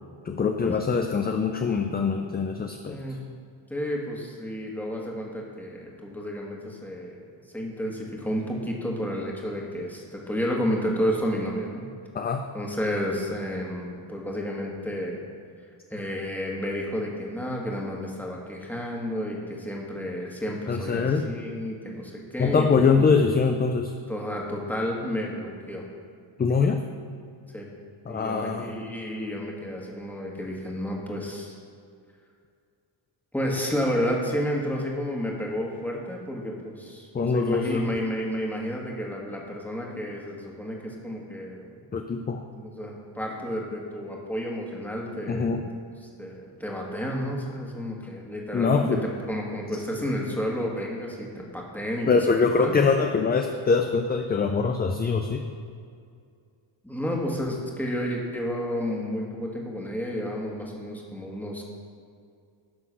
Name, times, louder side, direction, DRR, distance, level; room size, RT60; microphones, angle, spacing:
voice 1, 0.3-3.0 12.1-12.5 20.7-21.3 22.4-23.9 26.4-26.8 28.1-28.7 37.1-37.9 41.9-42.4 45.3-45.6 48.5-49.0 52.1-55.4, left 5 dB, 20° left, 5 dB, 0.4 m, -23 dB
voice 2, 2.9-3.2 3.7-7.3 7.5-11.9 12.5-15.2 15.9-23.1 24.1-25.8 27.5-27.7 28.1-31.6 33.3-41.8 42.5-45.6 46.2-52.1 52.6-52.8 56.8-61.6, equal, 5° left, -2 dB, 1.5 m, -31 dB
11.0 x 3.9 x 6.2 m, 2.3 s
cardioid pair, 105°, 48 cm